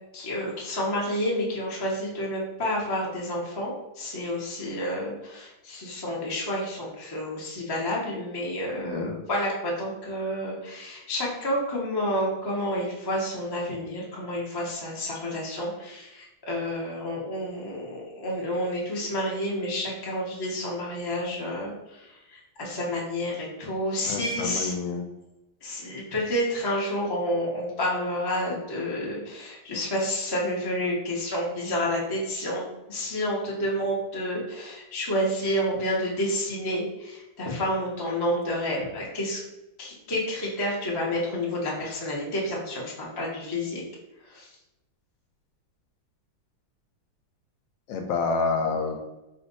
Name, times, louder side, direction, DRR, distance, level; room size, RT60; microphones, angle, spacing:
voice 1, 0.1-24.7 25.6-39.4 39.8-43.8 44.2-44.5, equal, 25° left, -4 dB, 0.5 m, -29 dB
voice 2, 8.8-9.1 24.1-25.0 47.9-49.0, left 4 dB, 80° left, 4 dB, 1.3 m, -28 dB
4.4 x 2.5 x 3.9 m, 1.0 s
omnidirectional pair, 2.1 m